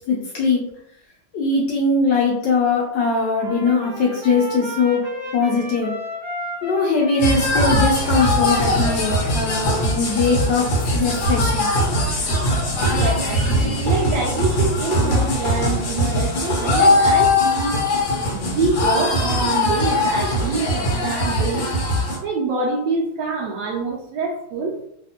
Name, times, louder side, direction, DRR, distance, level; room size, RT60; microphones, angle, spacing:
voice 1, 0.1-0.7 1.3-5.1 5.3-5.9 6.6-11.7, left 3 dB, 75° left, -2 dB, 1.1 m, -21 dB
Trumpet, 3.4-10.5, equal, 40° right, 1.0 m, -35 dB
sound 1, 7.2-22.2, left 1 dB, 55° left, 1.3 m, -20 dB
voice 2, 12.9-17.8 18.3-21.7 22.2-24.8, right 3 dB, 75° right, -1 dB, 1.0 m, -25 dB
3.3 x 2.4 x 2.7 m, 0.74 s
omnidirectional pair, 2.4 m